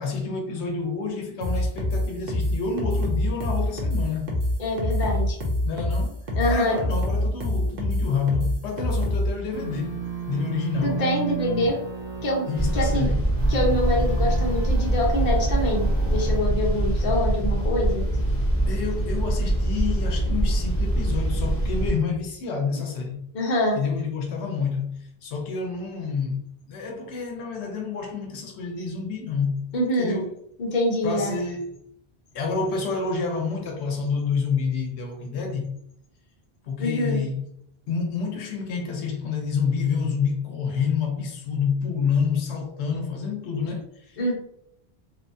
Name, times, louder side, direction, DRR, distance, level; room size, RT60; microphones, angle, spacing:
voice 1, 0.0-4.4 5.6-10.0 10.3-11.0 12.5-13.3 18.7-23.2 23.7-26.4 26.7-29.6 30.0-30.3 31.0-31.8 32.3-35.7 36.6-37.4 37.9-44.2, left 5 dB, 90° left, 0.9 m, -28 dB
sound 1, 1.4-9.3, left 1 dB, 60° right, 0.8 m, -25 dB
voice 2, 4.6-5.4 6.4-6.8 10.8-11.8 12.2-12.5 12.7-13.1 13.5-18.0 23.3-23.8 29.7-30.2 30.6-31.4 36.8-37.2 44.2-44.3, left 1 dB, 50° left, 0.9 m, -25 dB
sound 2, 9.5-13.0 13.4-16.4, right 4 dB, 30° right, 0.6 m, -33 dB
sound 3, 12.5-21.9, right 1 dB, 20° left, 0.6 m, -23 dB
2.9 x 2.1 x 2.5 m
omnidirectional pair, 1.1 m